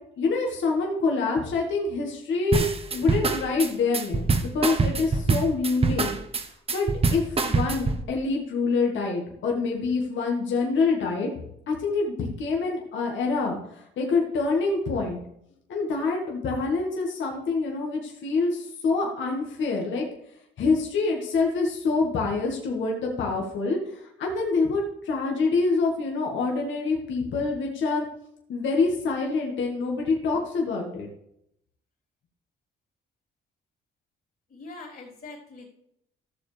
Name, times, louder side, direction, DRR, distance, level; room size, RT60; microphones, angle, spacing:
voice 1, 0.2-2.7 2.9-6.2 6.7-15.2 15.7-20.1 20.6-28.0 28.5-31.1, left 4 dB, 70° left, 0 dB, 1.8 m, -26 dB
sound 1, 2.5-8.0, right 4 dB, 30° right, 0.9 m, -24 dB
voice 2, 34.5-35.6, left 3 dB, 45° left, -8 dB, 3.7 m, -43 dB
14.0 x 7.1 x 3.4 m, 0.75 s
cardioid pair, 90°, 20 cm